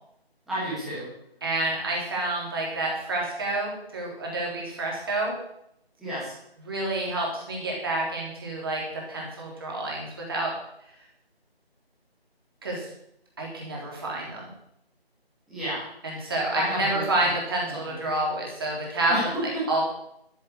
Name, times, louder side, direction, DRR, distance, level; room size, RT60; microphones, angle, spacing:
voice 1, 0.5-1.1 6.0-6.4 15.5-17.3 17.7-18.0 19.1-19.7, equal, ahead, -11 dB, 1.5 m, -32 dB
voice 2, 1.4-5.3 6.7-10.5 12.6-12.9 13.4-14.5 16.0-19.3 19.7-19.8, right 2 dB, 20° right, -3 dB, 3.6 m, -28 dB
13.0 x 7.2 x 9.3 m, 0.76 s
figure-of-eight pair, 170°, 32 cm